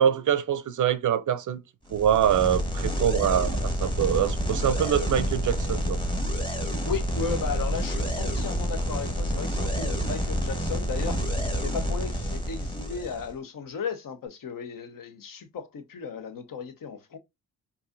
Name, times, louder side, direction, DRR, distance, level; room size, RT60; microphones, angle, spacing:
voice 1, 0.0-1.6 1.9-3.5 3.8-6.0, right 9 dB, 50° right, 0.5 m, -24 dB
sound 1, 1.9-13.3, equal, 10° left, 1.4 m, -28 dB
voice 2, 6.8-11.2 11.6-17.2, left 6 dB, 50° left, 1.0 m, -35 dB
4.6 x 2.7 x 2.5 m
supercardioid pair, 55°, 41 cm